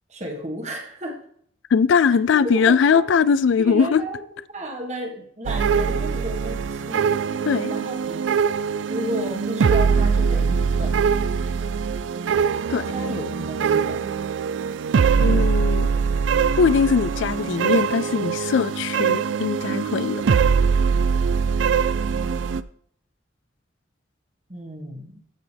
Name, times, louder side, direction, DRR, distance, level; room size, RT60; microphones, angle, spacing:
voice 1, 0.1-1.2 2.0-3.1 3.6-4.2 4.5-7.1 7.4-8.3 8.9-11.1 12.9-14.1 24.5-25.2, equal, 35° right, 1.6 m, -32 dB
voice 2, 1.7-4.0 7.4-7.8 12.7-12.9 15.2-15.9 16.6-20.2, left 6 dB, 85° left, 0.4 m, -20 dB
sound 1, 5.5-22.6, right 6 dB, 80° right, 0.4 m, -22 dB
14.5 x 6.1 x 3.4 m
head